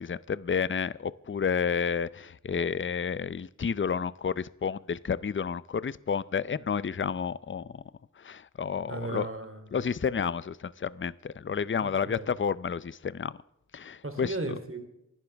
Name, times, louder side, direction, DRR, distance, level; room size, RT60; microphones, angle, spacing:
voice 1, 0.0-7.8 8.2-9.3 9.7-13.3 13.7-14.3, left 6 dB, 35° left, 19 dB, 0.5 m, -30 dB
voice 2, 8.7-9.8 11.8-12.3 14.0-14.9, right 2 dB, 35° right, 6 dB, 3.1 m, -36 dB
27.5 x 12.0 x 3.4 m, 0.86 s
wide cardioid pair, 60°, 35 cm